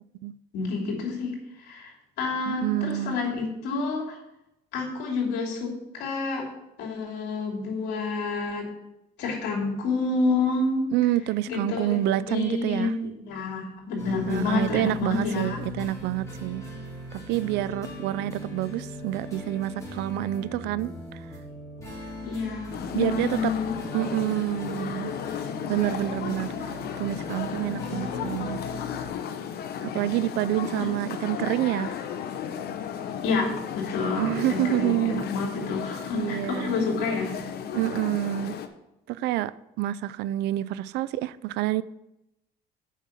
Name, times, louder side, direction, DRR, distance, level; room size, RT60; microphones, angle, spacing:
voice 1, 0.5-1.3 1.6-4.2 4.7-6.5 6.8-8.7 9.2-10.9 11.5-15.6 22.2-23.7 30.8-30.9 33.2-37.4, left 3 dB, 85° left, 3.0 m, -29 dB
voice 2, 2.5-3.2 10.9-12.9 14.3-16.7 17.1-21.2 22.9-23.5 23.9-25.1 25.7-26.5 27.0-28.6 29.8-32.0 34.2-35.2 36.1-36.8 37.7-38.5 39.1-41.8, right 15 dB, 85° right, 0.4 m, -28 dB
sound 1, 14.0-29.1, left 1 dB, 15° left, 3.3 m, -39 dB
sound 2, 22.7-38.7, left 8 dB, 70° left, 0.9 m, -34 dB
7.2 x 5.5 x 7.5 m
cardioid pair, 110°, 17 cm